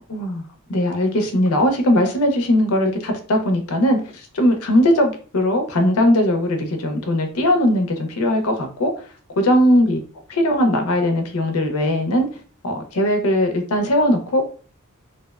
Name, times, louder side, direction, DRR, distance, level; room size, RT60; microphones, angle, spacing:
voice 1, 0.1-0.4 0.7-8.9 9.4-10.0 10.3-12.3 12.6-14.6, left 1 dB, 75° left, 0.5 m, -19 dB
2.6 x 2.0 x 2.3 m
head